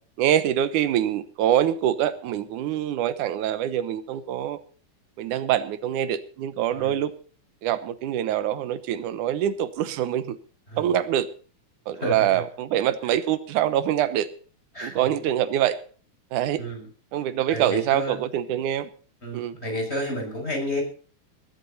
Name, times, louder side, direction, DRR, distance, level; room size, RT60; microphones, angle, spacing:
voice 1, 0.2-4.6 5.2-7.1 7.6-10.4 10.8-11.3 11.9-14.3 14.8-15.8 16.3-16.6 17.1-18.9 19.3-19.5, right 11 dB, 90° right, 13 dB, 2.5 m, -25 dB
voice 2, 12.0-12.4 14.7-15.1 16.6-16.8 17.5-18.2 19.2-20.8, equal, 20° left, 2 dB, 6.6 m, -30 dB
20.5 x 12.0 x 4.1 m, 0.41 s
omnidirectional pair, 3.4 m